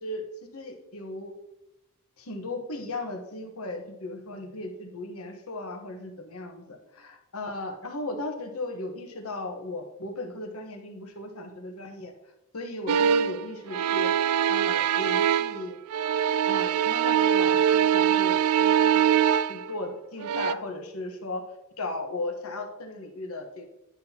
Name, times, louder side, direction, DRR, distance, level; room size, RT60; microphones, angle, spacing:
voice 1, 0.5-1.3 2.2-12.1 12.5-14.1 14.5-15.8 16.5-19.2 19.5-21.4 21.8-23.6, left 2 dB, 80° left, 4 dB, 1.2 m, -36 dB
sound 1, 12.9-13.4 13.7-15.6 15.9-19.7 20.2-20.5, right 9 dB, 75° right, 0.3 m, -23 dB
9.8 x 5.9 x 2.9 m, 0.92 s
head